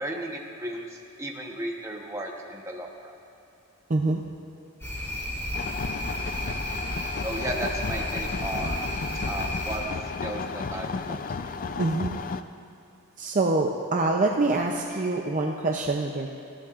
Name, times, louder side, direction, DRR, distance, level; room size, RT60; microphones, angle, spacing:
voice 1, 0.0-3.2 7.2-8.9 9.3-9.8 10.2-11.5, right 1 dB, 15° right, 0 dB, 1.1 m, -35 dB
voice 2, 3.9-4.2 9.1-9.2 11.8-12.2 13.2-16.4, right 2 dB, 35° right, 1 dB, 0.6 m, -25 dB
sound 1, 4.8-9.8, equal, 10° left, 3.1 m, -32 dB
sound 2, 5.5-12.4, left 4 dB, 40° left, 0.4 m, -33 dB
19.5 x 15.0 x 2.5 m, 2.7 s
head